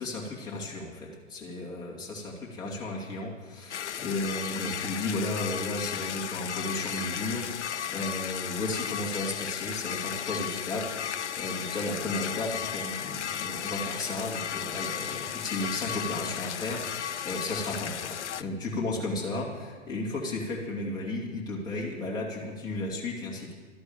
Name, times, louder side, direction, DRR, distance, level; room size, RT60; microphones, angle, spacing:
voice 1, 0.0-23.5, left 2 dB, 10° left, -5 dB, 2.6 m, -34 dB
sound 1, 3.7-18.4, left 9 dB, 60° left, 0.7 m, -34 dB
12.5 x 11.5 x 8.7 m, 1.5 s
figure-of-eight pair, 120°, 39 cm